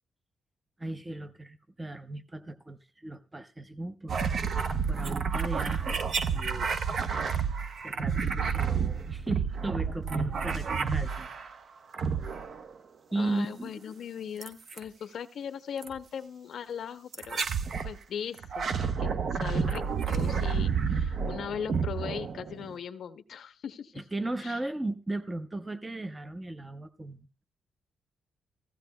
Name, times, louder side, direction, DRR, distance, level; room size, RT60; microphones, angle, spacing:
voice 1, 0.8-4.3 4.9-6.0 6.3-6.9 7.8-11.3 13.1-13.9 23.9-27.4, right 2 dB, 15° right, 0.6 m, -36 dB
sound 1, 4.1-11.5 11.9-12.7 14.4-14.8 15.8-16.0 17.1-17.9 18.4-22.7, right 6 dB, 50° right, 0.8 m, -30 dB
voice 2, 13.2-17.4 17.8-24.0 24.4-24.6, left 8 dB, 65° left, 0.6 m, -39 dB
16.0 x 15.5 x 2.2 m
cardioid pair, 135°, 0 cm